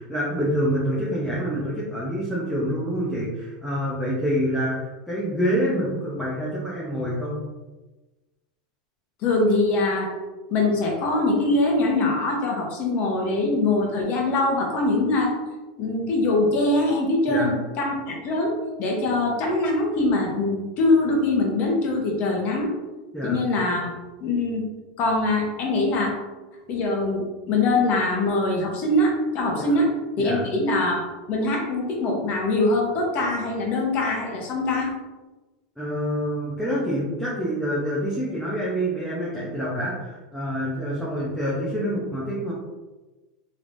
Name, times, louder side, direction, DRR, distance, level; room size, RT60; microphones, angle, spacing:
voice 1, 0.0-7.4 17.3-17.5 23.1-23.4 29.6-29.8 30.2-30.4 35.8-42.5, equal, ahead, -7 dB, 0.7 m, -27 dB
voice 2, 9.2-10.1 10.5-15.3 15.8-22.7 23.2-23.9 24.2-24.7 25.0-26.2 26.7-31.0 31.3-34.9, left 2 dB, 40° left, 0 dB, 1.0 m, -23 dB
3.4 x 3.1 x 2.6 m, 1.2 s
supercardioid pair, 135°, 4 cm